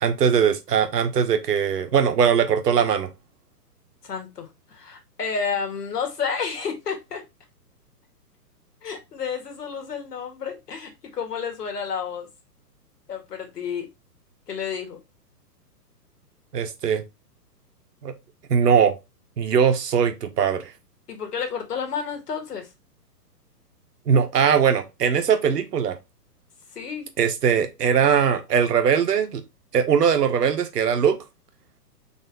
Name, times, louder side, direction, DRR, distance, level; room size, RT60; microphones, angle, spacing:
voice 1, 0.0-3.1 16.5-17.0 18.0-18.1 18.5-19.0 19.4-20.7 24.1-26.0 27.2-29.4 29.7-31.2, right 7 dB, 80° right, 1.1 m, -20 dB
voice 2, 4.0-7.2 8.8-12.3 13.1-13.9 14.5-15.0 21.1-22.7 26.7-27.1, left 6 dB, 75° left, 1.8 m, -30 dB
4.2 x 3.5 x 3.3 m
hypercardioid pair, 135°, 48 cm